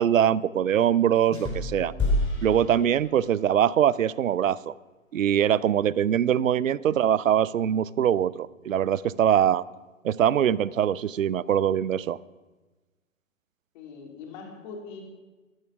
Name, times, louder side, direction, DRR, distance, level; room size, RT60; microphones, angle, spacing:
voice 1, 0.0-1.9 2.4-4.7 5.1-9.6 10.0-12.2, right 9 dB, 70° right, 21 dB, 0.6 m, -23 dB
sound 1, 1.3-3.5, left 1 dB, 10° left, 4.0 m, -29 dB
voice 2, 1.6-2.2 3.2-3.3 13.7-15.0, left 5 dB, 35° left, 1 dB, 3.3 m, -43 dB
13.5 x 13.0 x 6.0 m, 1.2 s
figure-of-eight pair, 120°, 41 cm